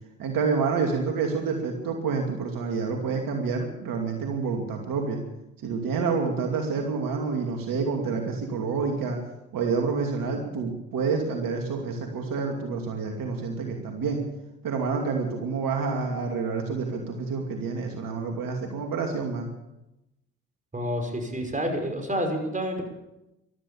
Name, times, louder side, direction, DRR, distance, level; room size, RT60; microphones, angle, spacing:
voice 1, 0.2-5.2 5.6-9.2 9.5-14.2 14.6-19.5, right 5 dB, 65° right, 2 dB, 2.6 m, -28 dB
voice 2, 20.7-22.8, equal, 20° right, 4 dB, 5.5 m, -29 dB
15.5 x 13.0 x 7.1 m, 0.91 s
hypercardioid pair, 55°, 36 cm